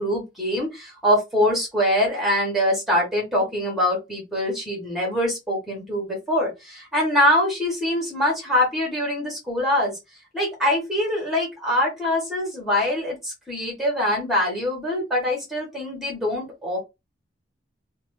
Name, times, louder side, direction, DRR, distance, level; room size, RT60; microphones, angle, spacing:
voice 1, 0.0-10.0 10.3-16.8, left 1 dB, ahead, -1 dB, 1.5 m, -24 dB
3.1 x 2.2 x 3.2 m, 0.23 s
head